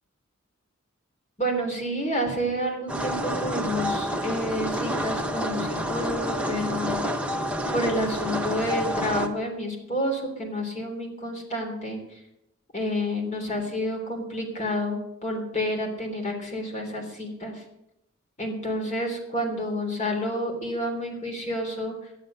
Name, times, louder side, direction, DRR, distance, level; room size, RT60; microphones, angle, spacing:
voice 1, 1.4-7.0 7.7-12.0 12.7-17.6 18.4-21.9, equal, 35° left, 2 dB, 3.3 m, -29 dB
sound 1, 2.9-9.3, equal, 5° right, 0.9 m, -29 dB
12.0 x 10.0 x 6.6 m, 0.85 s
head